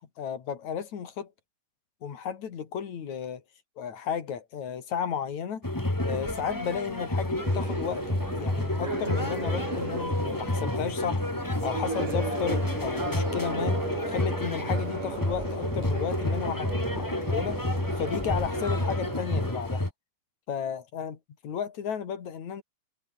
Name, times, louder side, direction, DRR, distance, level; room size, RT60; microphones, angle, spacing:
voice 1, 0.2-1.3 2.0-3.4 3.8-5.7 6.0-11.2 11.6-17.6 18.0-19.9 20.5-21.2 21.4-22.6, left 7 dB, 65° left, 4.0 m, -33 dB
sound 1, 5.6-19.9, left 1 dB, 10° left, 1.2 m, -30 dB
sound 2, 7.4-19.5, right 3 dB, 85° right, 9.4 m, -37 dB
omnidirectional pair, 3.6 m